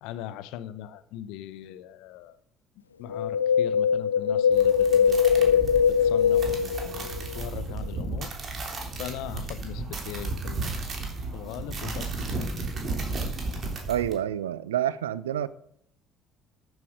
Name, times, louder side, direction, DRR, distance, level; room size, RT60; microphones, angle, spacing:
voice 1, 0.0-2.4 3.0-8.3 9.0-10.8 11.3-12.6, left 12 dB, 65° left, 0.8 m, -40 dB
Wind, 3.1-7.4 7.7-7.8, left 7 dB, 85° left, 0.4 m, -22 dB
sound 1, 4.5-14.1, right 3 dB, 45° right, 3.3 m, -34 dB
voice 2, 13.9-15.5, right 11 dB, 80° right, 0.5 m, -28 dB
13.0 x 7.9 x 5.1 m
figure-of-eight pair, 50°, 0 cm